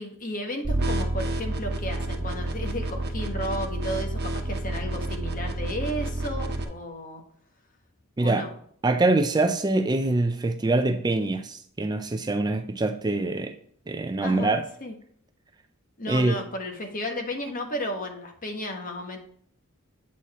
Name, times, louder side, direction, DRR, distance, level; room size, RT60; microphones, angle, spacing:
voice 1, 0.0-7.2 8.2-8.5 14.2-14.9 16.0-19.2, left 1 dB, 40° left, 1.4 m, -33 dB
sound 1, 0.6-6.6, right 1 dB, 50° right, 1.1 m, -29 dB
voice 2, 8.8-13.5 13.9-14.6 16.1-16.4, right 2 dB, 20° right, 0.4 m, -24 dB
8.3 x 4.6 x 4.2 m
head